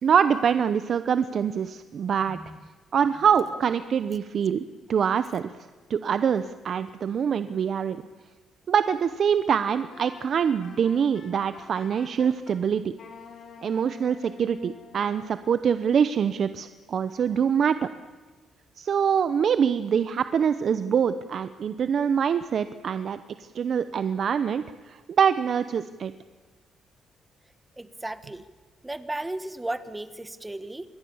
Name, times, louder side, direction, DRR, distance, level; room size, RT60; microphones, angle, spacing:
voice 1, 0.0-2.4 2.9-5.5 5.9-8.0 8.7-12.9 13.6-17.9 18.8-26.1, right 7 dB, 55° right, 12 dB, 0.8 m, -24 dB
Wind instrument woodwind instrument, 9.9-12.6 13.0-15.4, left 5 dB, 55° left, 3.7 m, -48 dB
voice 2, 27.8-28.4 28.8-30.8, right 1 dB, 15° right, 12 dB, 1.6 m, -35 dB
26.0 x 21.5 x 7.2 m, 1.4 s
cardioid pair, 90°, 0 cm